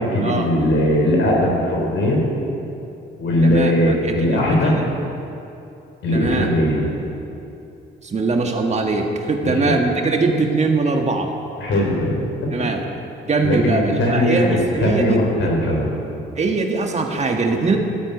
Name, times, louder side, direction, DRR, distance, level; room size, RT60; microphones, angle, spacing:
voice 1, 0.0-2.2 3.2-4.7 6.0-6.8 9.4-9.7 11.6-12.1 13.4-15.9, left 1 dB, 70° left, -1 dB, 4.5 m, -19 dB
voice 2, 3.4-4.8 6.1-6.5 8.0-11.3 12.5-12.8 13.3-15.2 16.4-17.8, right 3 dB, 35° right, 2 dB, 1.7 m, -21 dB
13.0 x 9.2 x 9.2 m, 2.7 s
cardioid pair, 90°, 20 cm